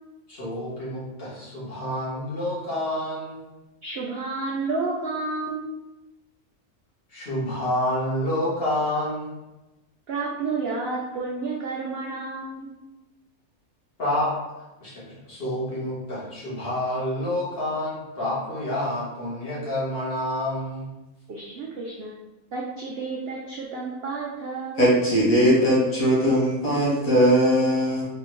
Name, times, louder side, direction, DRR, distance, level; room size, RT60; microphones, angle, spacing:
voice 1, 0.3-3.4 7.1-9.3 14.0-14.3 14.8-20.9, left 1 dB, 40° left, -8 dB, 1.5 m, -28 dB
voice 2, 3.8-5.7 10.1-12.7 21.3-22.1 22.5-24.9, right 3 dB, 70° right, -2 dB, 0.5 m, -30 dB
voice 3, 24.8-28.1, equal, 65° left, -7 dB, 1.7 m, -20 dB
3.5 x 3.3 x 3.0 m, 1.0 s
omnidirectional pair, 1.6 m